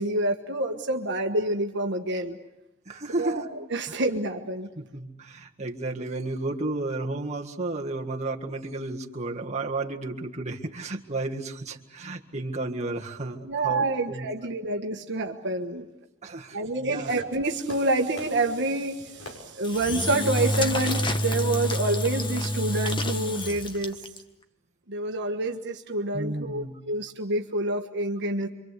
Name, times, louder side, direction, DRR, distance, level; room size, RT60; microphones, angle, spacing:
voice 1, 0.0-2.4 3.2-4.7 13.4-15.9 16.5-24.0 24.9-28.5, right 2 dB, 55° right, 4 dB, 1.5 m, -28 dB
voice 2, 2.9-3.6 4.8-14.3 16.2-17.1 26.1-26.8, right 2 dB, 35° right, 0 dB, 1.8 m, -32 dB
Fireworks, 17.1-22.1, left 1 dB, 75° left, 6.0 m, -47 dB
Engine / Drill, 19.6-24.2, left 1 dB, 25° left, 1.4 m, -28 dB
27.5 x 24.5 x 8.2 m, 0.92 s
head